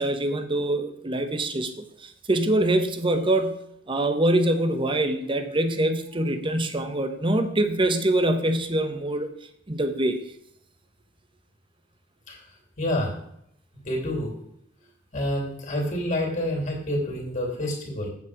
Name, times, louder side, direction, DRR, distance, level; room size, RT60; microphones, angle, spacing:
voice 1, 0.0-3.6 3.9-9.3 9.7-10.2, right 1 dB, 25° right, 8 dB, 0.9 m, -24 dB
voice 2, 12.8-13.1 13.8-14.3 15.1-18.1, left 1 dB, 45° left, 0 dB, 2.8 m, -28 dB
8.2 x 7.1 x 4.9 m, 0.74 s
head